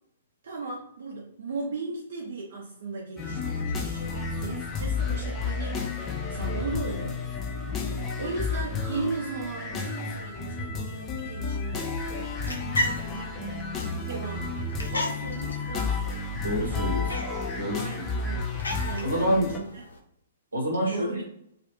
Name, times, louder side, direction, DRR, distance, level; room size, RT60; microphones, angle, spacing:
voice 1, 0.4-5.9 6.3-7.5 8.2-13.6 14.1-16.3 17.7-19.8 20.8-21.2, right 3 dB, 60° right, -2 dB, 0.5 m, -37 dB
sound 1, 3.2-19.6, left 4 dB, 20° left, 0.4 m, -32 dB
sound 2, 12.2-20.0, left 1 dB, 80° left, 0.5 m, -36 dB
voice 2, 16.4-17.2 17.6-18.0 19.0-19.5 20.5-21.1, equal, 85° right, 0 dB, 0.8 m, -27 dB
2.4 x 2.3 x 2.8 m, 0.73 s
figure-of-eight pair, 120°, 0 cm